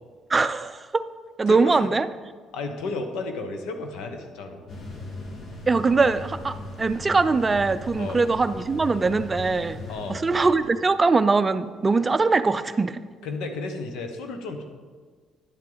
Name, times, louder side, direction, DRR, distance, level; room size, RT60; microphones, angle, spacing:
voice 1, 0.3-1.1 1.4-2.1 5.7-9.8 10.1-13.0, right 4 dB, 25° right, 12 dB, 0.4 m, -22 dB
voice 2, 1.5-1.9 2.5-4.6 8.0-8.2 9.9-10.2 13.2-14.6, left 3 dB, 80° left, 6 dB, 1.1 m, -32 dB
sound 1, 4.7-10.7, left 2 dB, 60° left, 1.8 m, -38 dB
10.0 x 7.6 x 4.0 m, 1.5 s
cardioid pair, 90°, 0 cm